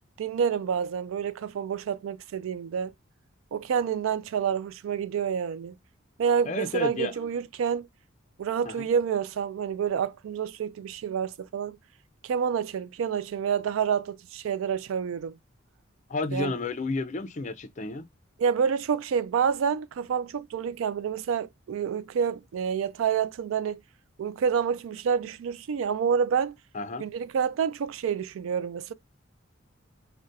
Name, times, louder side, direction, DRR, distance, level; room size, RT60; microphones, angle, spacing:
voice 1, 0.2-2.9 3.5-5.7 6.2-7.9 8.4-11.8 12.2-15.4 16.3-16.5 18.4-23.8 24.2-26.6 27.0-28.9, right 7 dB, 75° right, 0.3 m, -28 dB
voice 2, 6.5-7.1 8.7-8.8 16.1-18.1 26.7-27.0, left 3 dB, 35° left, 0.4 m, -31 dB
3.9 x 2.1 x 2.5 m
head